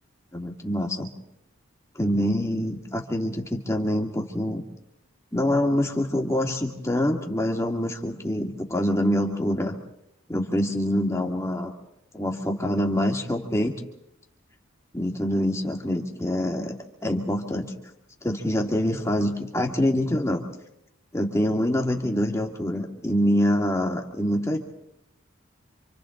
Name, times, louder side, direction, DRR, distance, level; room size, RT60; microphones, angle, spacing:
voice 1, 0.3-1.1 2.0-4.6 5.3-9.8 10.3-11.7 12.1-13.8 14.9-16.8 17.0-17.7 18.2-20.4 21.1-24.6, equal, 15° left, 1 dB, 2.1 m, -25 dB
27.5 x 27.0 x 3.8 m, 0.86 s
head